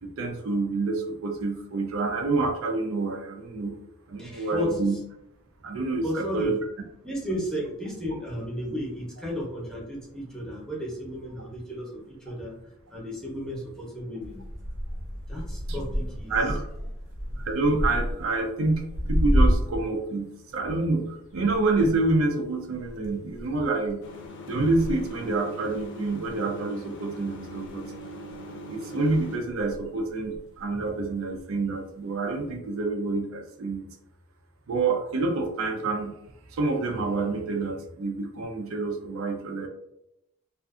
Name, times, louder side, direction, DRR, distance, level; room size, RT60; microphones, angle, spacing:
voice 1, 0.0-3.7 4.1-4.9 5.6-6.6 15.7-15.8 16.3-16.7 17.4-18.8 19.1-24.0 24.5-27.8 28.7-33.9 34.7-36.1 36.5-39.7, right 3 dB, 75° right, 3 dB, 0.5 m, -27 dB
voice 2, 4.2-4.8 6.0-6.5 7.0-12.6 12.9-14.4 15.3-16.3, equal, 5° left, -4 dB, 0.7 m, -33 dB
sound 1, 14.2-20.0 20.3-27.4 27.6-28.4 29.1-30.9 31.4-31.8 32.5-32.6, equal, 85° left, 0.8 m, -30 dB
sound 2, 24.0-29.4, equal, 60° left, 0.5 m, -41 dB
2.5 x 2.4 x 2.4 m, 0.82 s
head